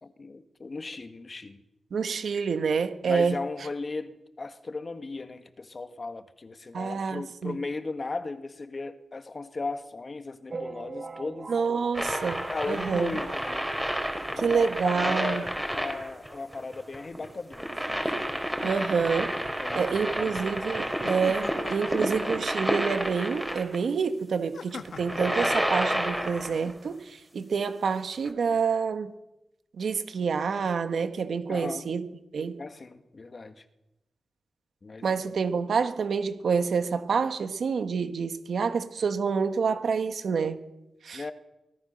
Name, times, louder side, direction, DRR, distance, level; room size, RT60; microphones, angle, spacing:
voice 1, 0.0-1.6 3.1-11.5 12.5-13.7 14.3-18.4 18.7-18.8 19.6-20.3 31.5-31.9 32.6-33.6 34.8-35.1 41.1-41.3, left 3 dB, 40° left, 1.8 m, -37 dB
voice 2, 1.9-3.4 6.7-7.6 11.5-13.2 14.4-15.4 18.6-19.3 19.7-29.1 29.8-32.1 32.3-32.6 35.0-40.6 41.0-41.2, right 5 dB, 70° right, 1.7 m, -28 dB
sound 1, 10.5-13.4 13.8-13.9 14.1-14.3 14.6-14.7 15.5-15.6 16.1-16.2, right 4 dB, 40° right, 1.1 m, -42 dB
sound 2, 11.9-23.8 24.8-26.7 28.3-28.4, equal, 5° right, 4.4 m, -30 dB
sound 3, 18.6-19.5 21.0-22.3 24.5-26.7, left 5 dB, 70° left, 1.7 m, -43 dB
24.0 x 18.0 x 6.6 m
wide cardioid pair, 100°, 0 cm